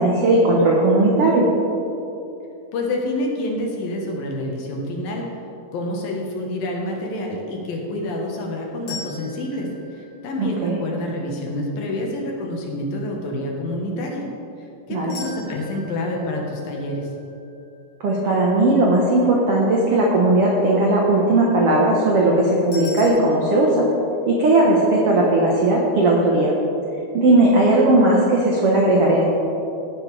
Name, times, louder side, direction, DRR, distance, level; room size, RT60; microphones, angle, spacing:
voice 1, 0.0-1.5 10.4-10.8 14.9-15.1 18.0-23.9 24.3-26.5 27.1-29.2, right 2 dB, 70° right, -3 dB, 1.4 m, -17 dB
voice 2, 2.7-5.3 5.7-14.3 14.6-17.1, left 1 dB, 70° left, 0 dB, 2.9 m, -28 dB
sound 1, 8.9-11.0 15.1-18.2 22.7-23.1, left 4 dB, 40° left, 3.5 m, -40 dB
15.5 x 10.5 x 3.4 m, 2.8 s
omnidirectional pair, 4.5 m